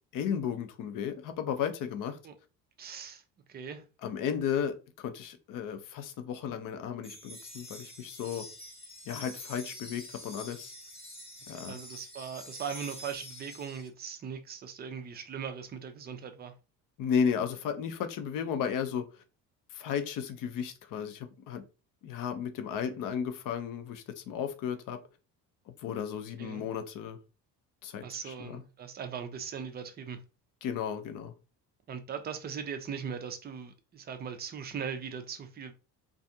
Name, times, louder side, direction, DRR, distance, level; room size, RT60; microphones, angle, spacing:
voice 1, 0.1-2.2 4.0-8.5 9.1-10.7 11.5-11.8 17.0-19.1 19.7-21.6 22.0-25.0 25.7-27.2 27.8-28.6 30.6-31.3, left 7 dB, 40° left, 0.6 m, -34 dB
voice 2, 2.8-3.2 3.5-3.8 11.6-16.5 26.4-26.7 28.0-30.2 31.9-35.7, right 7 dB, 20° right, 0.4 m, -39 dB
sound 1, 7.0-13.9, left 1 dB, 10° left, 0.9 m, -47 dB
2.5 x 2.3 x 2.6 m
figure-of-eight pair, 55°, 49 cm